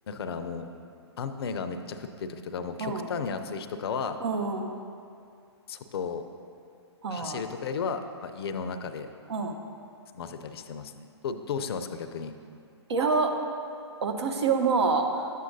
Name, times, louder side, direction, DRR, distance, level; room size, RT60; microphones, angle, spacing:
voice 1, 0.1-0.7 1.2-4.2 5.7-6.2 7.1-9.1 10.1-12.3, left 5 dB, 60° left, 9 dB, 0.5 m, -34 dB
voice 2, 4.2-4.7 7.0-7.4 9.3-9.5 12.9-13.3 14.0-15.3, right 4 dB, 70° right, 4 dB, 0.8 m, -26 dB
9.3 x 7.5 x 2.6 m, 2.4 s
hypercardioid pair, 125°, 15 cm